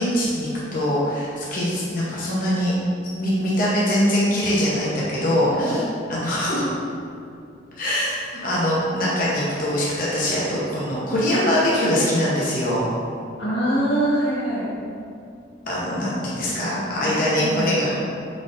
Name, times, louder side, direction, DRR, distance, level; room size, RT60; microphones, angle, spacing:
voice 1, 0.0-2.7 3.2-5.8 6.1-6.7 7.8-8.1 8.4-10.4 10.7-12.9 15.7-17.9, left 1 dB, 45° left, -7 dB, 0.9 m, -22 dB
voice 2, 5.5-5.8 13.4-14.7 17.2-17.9, right 1 dB, 90° left, -11 dB, 1.2 m, -24 dB
5.2 x 4.0 x 2.5 m, 2.4 s
head